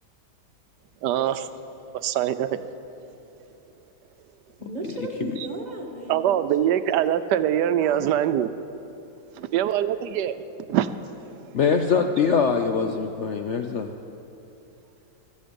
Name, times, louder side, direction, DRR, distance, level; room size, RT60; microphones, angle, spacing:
voice 1, 1.0-1.5 2.0-2.6 6.1-8.5 9.4-10.4 10.7-10.9, right 11 dB, 85° right, 13 dB, 1.2 m, -23 dB
voice 2, 4.6-7.1 7.8-8.2, right 1 dB, 25° right, 0 dB, 1.6 m, -35 dB
voice 3, 11.5-13.9, left 5 dB, 60° left, 5 dB, 0.8 m, -23 dB
25.0 x 8.6 x 5.2 m, 2.9 s
omnidirectional pair, 1.8 m